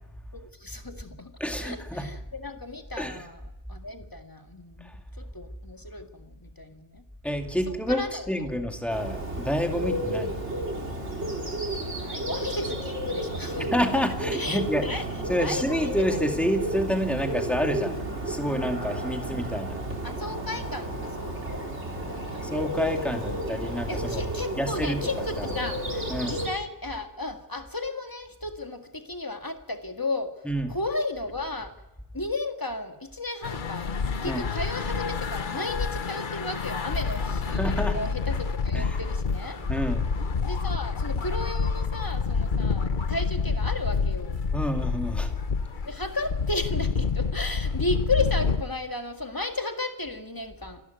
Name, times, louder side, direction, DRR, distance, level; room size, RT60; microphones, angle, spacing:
voice 1, 0.3-1.3 1.6-3.4 3.7-7.0 7.7-8.5 10.1-10.2 12.0-13.7 14.3-15.1 15.4-16.2 20.0-21.7 22.0-22.8 23.9-31.7 32.1-39.6 40.4-44.4 45.9-50.8, left 2 dB, 20° left, 5 dB, 1.9 m, -34 dB
voice 2, 1.4-2.1 3.0-3.2 4.8-4.9 7.2-10.3 10.8-11.0 13.7-14.8 15.3-18.0 18.3-19.8 22.4-24.2 24.6-25.0 25.4-25.5 26.1-26.4 30.5-30.7 34.2-34.4 37.5-38.0 38.7-38.9 39.7-40.1 44.5-45.3, equal, ahead, 4 dB, 2.3 m, -28 dB
Bird, 8.9-26.5, right 1 dB, 75° right, 3.8 m, -32 dB
sound 1, 33.4-48.6, left 5 dB, 45° left, 1.1 m, -28 dB
28.0 x 12.0 x 9.5 m, 0.96 s
omnidirectional pair, 1.2 m